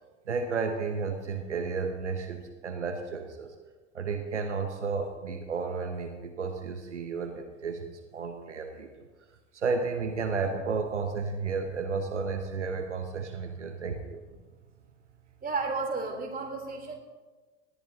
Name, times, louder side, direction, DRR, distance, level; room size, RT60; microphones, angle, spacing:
voice 1, 0.3-3.5 3.9-8.9 9.5-14.2, right 4 dB, 90° right, 6 dB, 0.9 m, -32 dB
voice 2, 15.4-17.0, right 4 dB, 25° right, 1 dB, 3.3 m, -32 dB
18.5 x 13.0 x 2.8 m, 1.3 s
hypercardioid pair, 75°, 35 cm